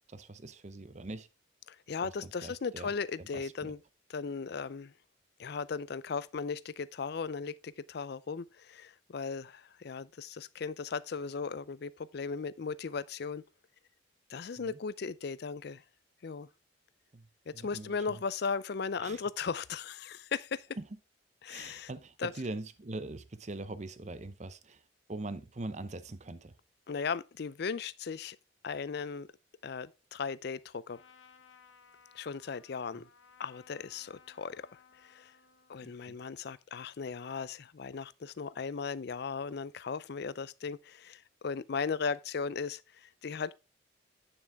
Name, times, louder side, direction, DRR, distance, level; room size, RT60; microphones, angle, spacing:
voice 1, 0.1-1.3 2.0-2.1 2.4-2.9 3.2-3.7 14.6-14.8 17.1-17.3 17.5-18.2 19.0-19.2 20.8-20.9 21.5-24.8 25.1-26.5 32.9-33.1 35.8-36.2, right 2 dB, 35° right, 0.7 m, -42 dB
voice 2, 1.7-3.8 4.1-4.9 5.4-13.4 14.3-15.8 16.2-16.5 17.5-20.7 21.4-21.9 22.2-22.3 26.9-28.4 28.6-29.3 29.6-31.0 32.1-33.1 33.4-34.7 35.0-35.3 35.7-43.5, left 5 dB, 55° left, 0.4 m, -37 dB
Trumpet, 30.9-35.8, left 6 dB, 75° left, 1.1 m, -60 dB
9.0 x 7.1 x 3.5 m
head